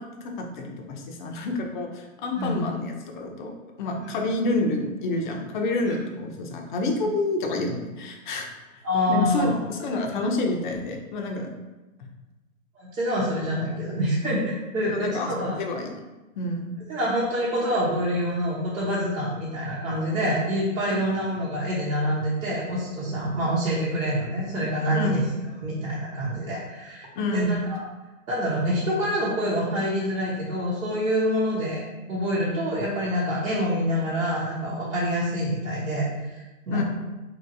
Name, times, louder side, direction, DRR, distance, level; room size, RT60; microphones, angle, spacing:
voice 1, 0.2-3.5 3.8-8.5 8.7-8.8 9.1-11.5 14.9-16.0 16.4-16.7 20.9-21.0 24.9-25.2 27.2-27.7 36.7-36.8, left 2 dB, 40° left, 2 dB, 0.4 m, -28 dB
voice 2, 2.3-2.7 4.0-4.1 5.8-6.0 8.8-9.6 12.8-15.6 16.9-25.2 25.6-27.8 28.3-36.4 36.7-36.8, equal, 85° right, -9 dB, 1.0 m, -26 dB
2.9 x 2.6 x 2.6 m, 1.1 s
hypercardioid pair, 130°, 41 cm